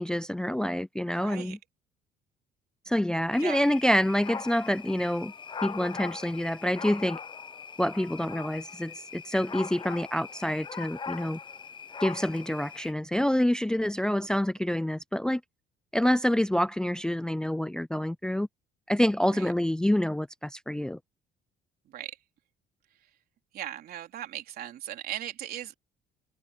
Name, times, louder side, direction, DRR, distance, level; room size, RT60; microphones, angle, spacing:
voice 1, 0.0-1.6 2.9-5.3 5.6-7.2 7.8-11.4 12.0-15.4 15.9-18.5 18.9-21.0, left 1 dB, 5° left, 0.5 m, -27 dB
voice 2, 1.1-1.6 3.4-3.7 14.0-14.3 19.3-19.5 21.9-22.2 23.0-23.1 23.5-25.7, right 11 dB, 65° right, 3.9 m, -39 dB
sound 1, 3.3-12.9, left 5 dB, 30° left, 0.9 m, -40 dB
cardioid pair, 110°, 17 cm